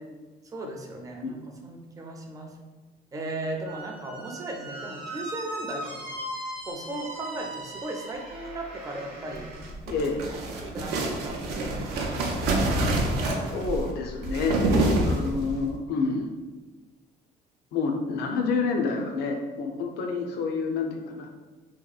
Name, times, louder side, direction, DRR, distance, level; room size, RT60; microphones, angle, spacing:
voice 1, 0.5-2.5 3.1-6.2 6.6-9.5 10.7-12.8, right 2 dB, 20° right, 1 dB, 0.4 m, -37 dB
Squeak, 3.6-9.7, right 1 dB, 60° right, 0.8 m, -39 dB
sound 1, 9.6-15.6, right 2 dB, 90° right, 0.5 m, -27 dB
voice 2, 9.9-10.2 13.5-14.6 15.0-16.3 17.7-21.3, left 4 dB, 75° left, 3 dB, 0.4 m, -28 dB
2.8 x 2.2 x 2.3 m, 1.3 s
cardioid pair, 110°, 17 cm